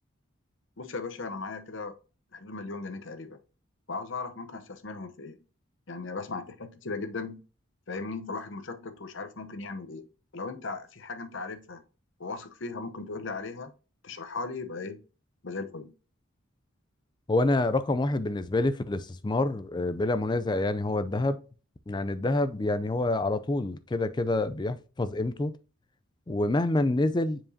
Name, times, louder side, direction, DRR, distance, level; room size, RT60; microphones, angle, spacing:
voice 1, 0.8-1.9 2.3-3.4 3.9-5.4 5.9-7.4 7.9-10.0 10.3-11.8 12.2-13.7 14.0-15.0 15.4-15.9, left 3 dB, 60° left, 0.8 m, -37 dB
voice 2, 17.3-21.4 21.9-25.5 26.3-27.4, left 2 dB, 20° left, 0.4 m, -27 dB
7.4 x 4.9 x 2.7 m
head